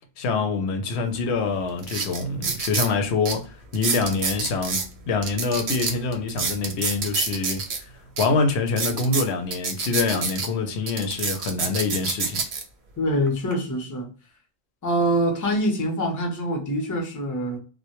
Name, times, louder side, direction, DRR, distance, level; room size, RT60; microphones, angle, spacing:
voice 1, 0.2-4.8 5.1-7.6 8.2-12.4, left 4 dB, 90° left, 0.8 m, -25 dB
sound 1, 1.1-1.2 1.8-2.9 3.2-3.3 3.7-4.9 5.2-7.8 8.2-8.3 8.7-10.5 10.9-12.6 13.3-13.5, right 5 dB, 85° right, 0.9 m, -27 dB
voice 2, 13.0-14.1 14.8-17.6, equal, 25° left, 0.5 m, -24 dB
2.1 x 2.1 x 2.8 m
omnidirectional pair, 1.1 m